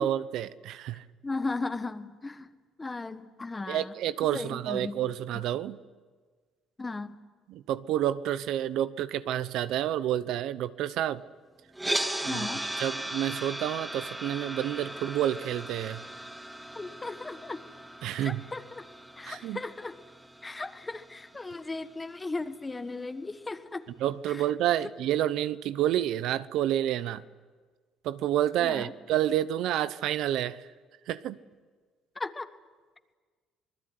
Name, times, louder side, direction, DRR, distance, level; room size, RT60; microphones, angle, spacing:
voice 1, 0.0-1.0 3.7-5.8 7.5-11.2 12.2-16.0 18.0-18.4 19.3-19.6 24.0-27.2 28.0-30.7 31.1-31.4, right 12 dB, 75° right, 14 dB, 0.9 m, -29 dB
voice 2, 1.2-2.5 2.8-3.9 4.3-5.0 5.3-5.4 6.8-7.2 12.2-12.7 16.7-17.6 18.2-18.8 19.2-19.9 20.4-23.8 24.3-24.4 28.6-28.9 32.1-32.5, left 3 dB, 15° left, 10 dB, 1.4 m, -36 dB
sound 1, 11.7-21.9, right 1 dB, 10° right, 2.8 m, -37 dB
27.0 x 20.5 x 9.7 m, 1.4 s
cardioid pair, 120°, 0 cm